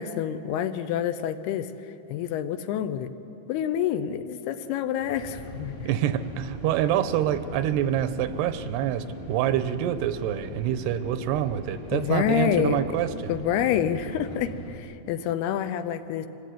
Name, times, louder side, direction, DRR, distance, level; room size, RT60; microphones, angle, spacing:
voice 1, 0.0-1.7 2.1-3.1 3.5-5.9 11.9-13.0 13.3-16.3, left 9 dB, 80° left, 10 dB, 2.8 m, -27 dB
sound 1, 5.0-14.8, equal, 35° left, 0.9 m, -40 dB
voice 2, 5.8-13.3, right 11 dB, 90° right, 11 dB, 3.0 m, -26 dB
25.0 x 17.0 x 9.3 m, 2.9 s
omnidirectional pair, 4.7 m